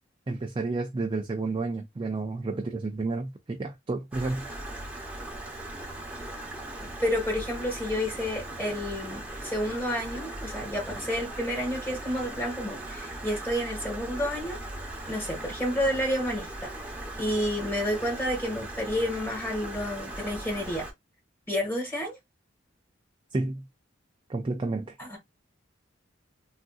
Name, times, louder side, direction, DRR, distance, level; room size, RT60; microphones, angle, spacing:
voice 1, 0.3-4.5 23.3-23.6 24.3-25.0, right 3 dB, 25° right, 0.4 m, -31 dB
Stream, 4.1-20.9, right 1 dB, 10° right, 0.8 m, -39 dB
voice 2, 6.8-14.6 15.1-20.8 21.5-22.2 25.0-25.2, equal, 10° left, 1.6 m, -30 dB
3.6 x 2.5 x 2.3 m
head